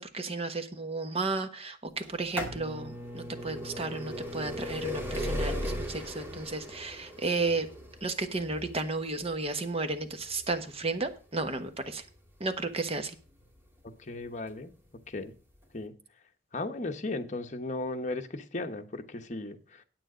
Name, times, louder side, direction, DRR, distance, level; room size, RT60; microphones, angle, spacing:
voice 1, 0.0-1.8 2.1-7.7 8.0-12.0 12.4-13.1, right 3 dB, 35° right, 1.2 m, -33 dB
sound 1, 2.0-13.7 14.5-14.6 15.5-15.6 15.8-15.9, equal, 15° right, 2.1 m, -38 dB
voice 2, 13.8-14.7 15.1-15.3 15.7-15.9 16.5-19.8, left 2 dB, 45° left, 1.1 m, -36 dB
9.2 x 8.8 x 5.0 m
head